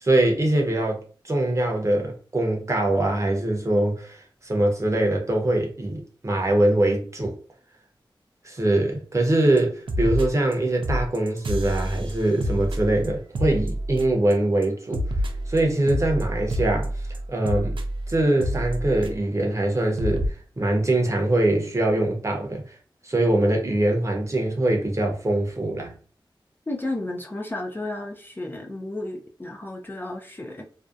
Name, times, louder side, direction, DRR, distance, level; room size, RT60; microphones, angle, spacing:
voice 1, 0.0-7.3 8.4-15.1 15.5-16.9 17.3-17.7 18.1-22.6 23.0-25.9, right 1 dB, 35° right, 0.7 m, -23 dB
sound 1, 9.6-9.7 9.9-10.5 10.8-14.3 14.6-19.4 19.7-19.8 20.0-20.3, equal, 70° right, 0.4 m, -28 dB
voice 2, 26.7-30.6, left 2 dB, 25° left, 0.4 m, -33 dB
2.6 x 2.1 x 2.4 m
wide cardioid pair, 70°, 9 cm